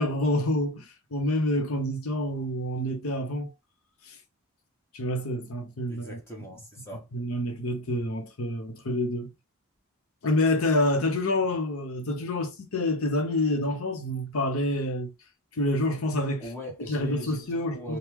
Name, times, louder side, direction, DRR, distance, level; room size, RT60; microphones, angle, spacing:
voice 1, 0.0-3.5 4.1-4.2 4.9-6.2 7.1-9.3 10.2-15.1 15.6-16.5 16.8-18.0, left 1 dB, 80° left, 0.8 m, -27 dB
voice 2, 5.9-7.1 16.4-18.0, equal, 10° left, 1.0 m, -41 dB
3.5 x 2.3 x 3.0 m
head